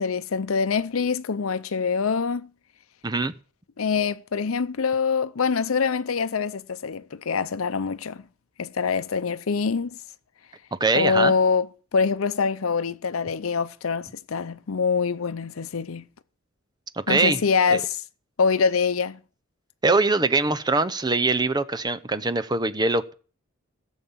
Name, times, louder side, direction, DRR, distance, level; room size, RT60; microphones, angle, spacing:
voice 1, 0.0-2.5 3.8-8.2 8.6-9.9 11.0-11.7 11.9-16.0 17.1-18.0 18.4-19.2, left 5 dB, 90° left, 0.6 m, -24 dB
voice 2, 3.0-3.3 10.8-11.3 17.1-17.4 17.7-17.8 19.8-23.1, right 3 dB, 20° right, 0.8 m, -22 dB
16.5 x 7.2 x 7.3 m
head